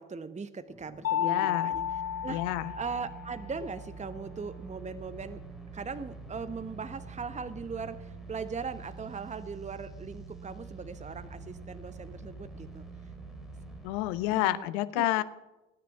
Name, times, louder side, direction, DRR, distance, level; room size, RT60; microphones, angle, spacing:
voice 1, 0.0-2.4 2.7-5.4 5.7-12.8 14.3-14.7 14.9-15.1, right 5 dB, 15° right, 12 dB, 1.0 m, -39 dB
sound 1, 0.7-14.4, left 2 dB, ahead, 3.9 m, -54 dB
Mallet percussion, 1.0-3.6, left 10 dB, 40° left, 0.6 m, -32 dB
voice 2, 1.2-1.7 2.3-2.7 13.8-15.2, left 15 dB, 65° left, 15 dB, 1.0 m, -29 dB
sound 2, 1.7-13.8, right 5 dB, 80° right, 4.0 m, -46 dB
18.0 x 10.5 x 7.2 m, 1.0 s
figure-of-eight pair, 55°, 40 cm